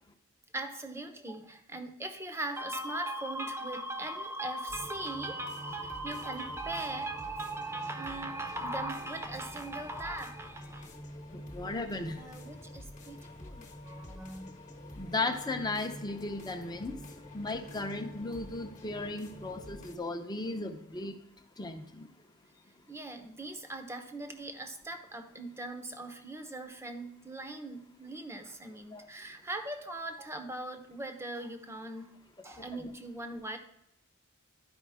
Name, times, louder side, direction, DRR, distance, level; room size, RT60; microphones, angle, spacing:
voice 1, 0.5-10.9 12.2-14.5 22.9-33.6, right 2 dB, 10° right, 6 dB, 0.8 m, -39 dB
sound 1, 4.7-20.0, left 1 dB, 35° left, 1.2 m, -48 dB
voice 2, 11.3-12.1 15.0-17.0 17.3-21.1 21.6-22.1 28.9-29.0, left 2 dB, 20° left, 5 dB, 0.8 m, -36 dB
12.0 x 5.1 x 3.5 m, 0.85 s
head